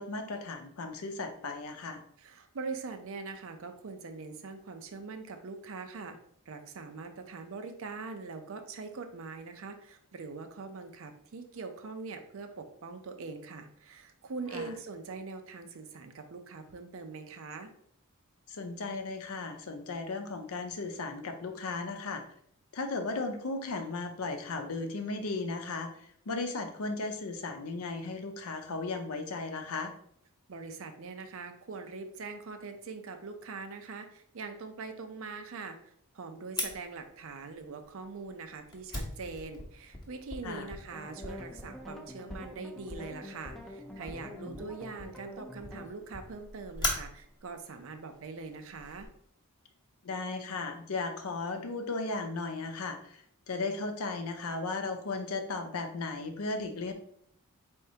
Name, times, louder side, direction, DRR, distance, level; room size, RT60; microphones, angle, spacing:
voice 1, 0.0-2.0 14.5-14.7 18.5-22.2 22.7-29.9 40.4-40.7 44.3-44.6 50.0-56.9, left 3 dB, 75° left, 6 dB, 0.6 m, -36 dB
voice 2, 2.2-6.2 6.5-17.7 30.5-49.1, right 4 dB, 65° right, 7 dB, 0.5 m, -42 dB
Fire, 36.6-49.1, left 2 dB, 20° left, 0.8 m, -42 dB
sound 1, 40.9-45.9, left 1 dB, ahead, 0.5 m, -46 dB
4.3 x 3.5 x 2.8 m, 0.66 s
head